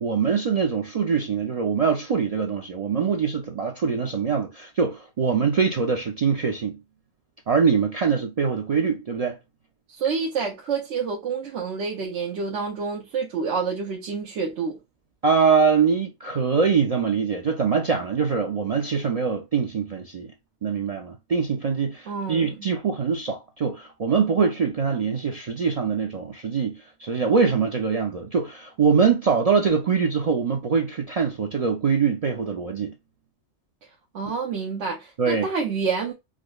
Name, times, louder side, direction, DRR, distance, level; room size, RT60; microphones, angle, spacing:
voice 1, 0.0-6.8 7.5-9.4 15.2-20.3 20.6-32.9 35.2-35.5, right 5 dB, 60° right, 0.3 m, -23 dB
voice 2, 9.9-14.8 22.1-22.7 34.1-36.1, right 5 dB, 80° right, 0.9 m, -28 dB
5.0 x 2.1 x 2.3 m
omnidirectional pair, 1.2 m